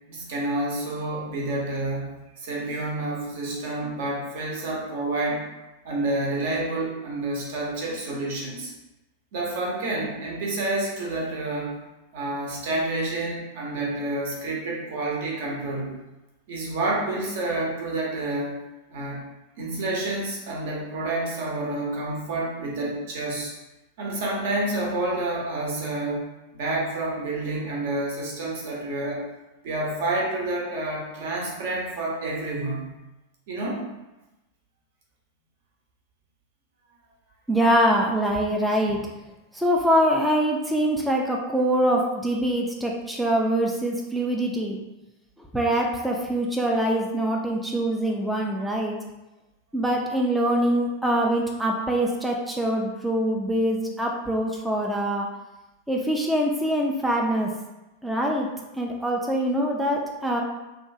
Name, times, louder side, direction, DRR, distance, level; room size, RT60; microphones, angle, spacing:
voice 1, 0.1-5.5 5.8-8.7 9.3-11.8 12.1-16.0 16.5-18.6 18.9-19.3 19.6-23.5 24.0-26.3 26.5-29.3 29.6-33.0 33.5-33.9, right 2 dB, 55° right, -2 dB, 0.7 m, -29 dB
voice 2, 37.5-39.1 39.5-44.8 45.5-49.0 49.7-55.3 55.9-57.5 58.0-58.5 58.8-60.4, right 1 dB, 5° right, -1 dB, 0.3 m, -24 dB
2.8 x 2.3 x 2.7 m, 1.0 s
figure-of-eight pair, 90°, 0 cm